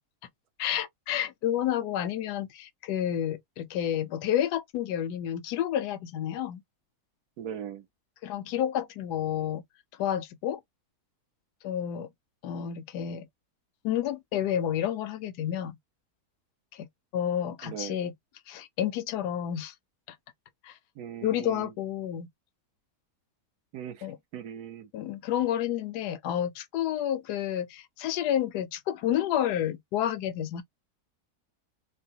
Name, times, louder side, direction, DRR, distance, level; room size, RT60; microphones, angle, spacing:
voice 1, 0.6-6.6 8.2-9.6 10.0-10.6 11.6-12.1 12.4-13.3 13.8-15.7 16.7-16.9 17.1-18.1 18.5-19.7 20.1-20.2 20.6-20.8 21.2-22.3 24.0-24.2 24.9-30.6, left 10 dB, 85° left, 1.1 m, -30 dB
voice 2, 7.4-7.8 17.6-18.0 21.0-21.7 23.7-24.1 24.3-24.9, right 9 dB, 75° right, 1.3 m, -39 dB
3.8 x 2.1 x 2.7 m
omnidirectional pair, 1.7 m